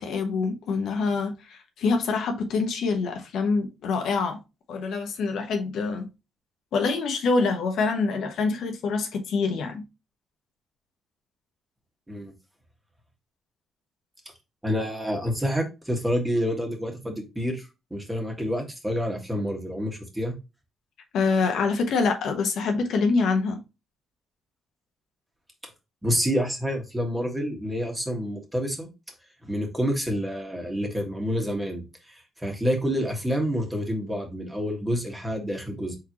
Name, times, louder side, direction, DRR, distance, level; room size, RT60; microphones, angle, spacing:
voice 1, 0.0-4.4 4.7-6.1 6.7-9.8 21.1-23.6, left 4 dB, 75° left, 1.0 m, -25 dB
voice 2, 14.6-17.6 17.9-20.3 26.0-28.9 29.4-32.1 32.4-36.0, equal, 10° right, 1.6 m, -28 dB
4.4 x 3.9 x 2.9 m
cardioid pair, 90°, 0 cm